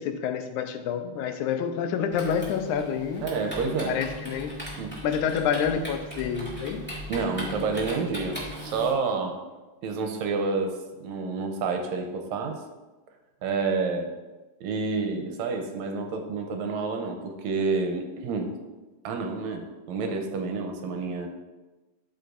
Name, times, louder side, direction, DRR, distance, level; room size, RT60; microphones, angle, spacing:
voice 1, 0.0-3.3 3.9-4.5 5.0-6.8, left 7 dB, 85° left, 7 dB, 2.1 m, -28 dB
Typing, 2.1-8.9, right 1 dB, 5° left, 1.3 m, -38 dB
voice 2, 3.2-4.0 4.8-4.9 7.1-8.4 8.6-9.4 9.8-10.8 11.0-12.6 13.4-14.1 14.6-18.5 19.0-21.3, right 4 dB, 80° right, 4 dB, 1.9 m, -29 dB
12.5 x 5.0 x 2.6 m, 1.2 s
omnidirectional pair, 3.4 m